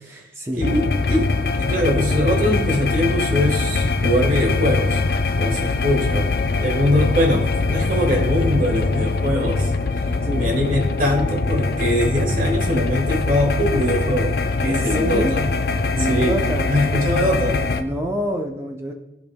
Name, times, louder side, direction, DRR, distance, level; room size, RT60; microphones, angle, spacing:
voice 1, 0.0-0.7 10.2-10.5 14.6-15.3 15.9-16.7 17.8-18.9, equal, 15° right, 2 dB, 0.6 m, -26 dB
voice 2, 0.5-1.3 1.6-5.0 5.4-6.3 6.6-9.7 10.4-14.4 14.6-15.5 16.0-16.4 16.7-17.7, left 1 dB, 45° right, 2 dB, 1.4 m, -22 dB
sound 1, 0.6-17.8, left 3 dB, 55° left, 0.5 m, -22 dB
14.5 x 5.2 x 2.2 m, 0.98 s
head